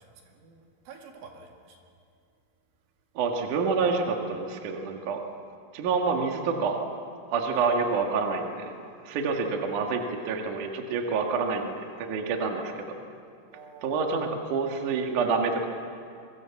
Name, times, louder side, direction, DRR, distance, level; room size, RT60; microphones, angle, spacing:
voice 1, 0.0-1.8 7.6-7.7 12.5-13.2 13.5-14.5, right 5 dB, 80° right, 2 dB, 4.6 m, -49 dB
voice 2, 3.1-5.2 5.7-6.8 7.3-8.7 9.0-12.9 13.8-15.7, right 4 dB, 55° right, 2 dB, 2.6 m, -27 dB
24.5 x 23.5 x 7.2 m, 2.4 s
omnidirectional pair, 5.6 m